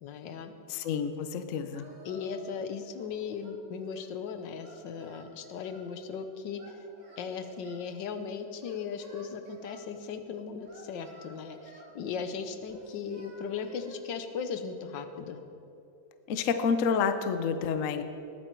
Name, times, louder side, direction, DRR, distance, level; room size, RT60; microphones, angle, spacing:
voice 1, 0.0-0.5 2.0-6.8 7.2-15.4, left 6 dB, 80° left, 8 dB, 1.5 m, -37 dB
voice 2, 0.7-1.8 16.3-18.0, left 6 dB, 60° left, 9 dB, 0.9 m, -29 dB
Singing, 1.7-2.6 2.9-4.2 4.6-5.9 6.6-7.9 8.6-9.8 10.6-11.9 12.7-14.0, right 1 dB, 45° right, 2.1 m, -52 dB
20.0 x 8.8 x 4.5 m, 2.8 s
omnidirectional pair, 1.9 m